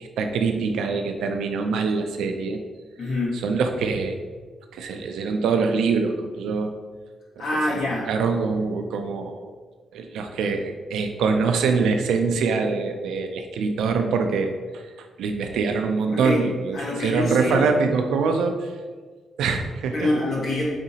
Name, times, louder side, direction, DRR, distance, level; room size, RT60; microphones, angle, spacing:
voice 1, 0.0-2.6 3.4-4.2 4.7-6.7 7.4-7.8 8.1-9.5 9.9-14.8 15.2-18.7 19.4-20.1, right 4 dB, 85° right, 5 dB, 0.4 m, -24 dB
voice 2, 3.0-3.4 7.4-8.1 16.1-16.4 16.7-17.6 19.9-20.6, left 1 dB, 70° left, -5 dB, 1.4 m, -25 dB
5.0 x 2.7 x 2.8 m, 1.4 s
cardioid pair, 75°, 0 cm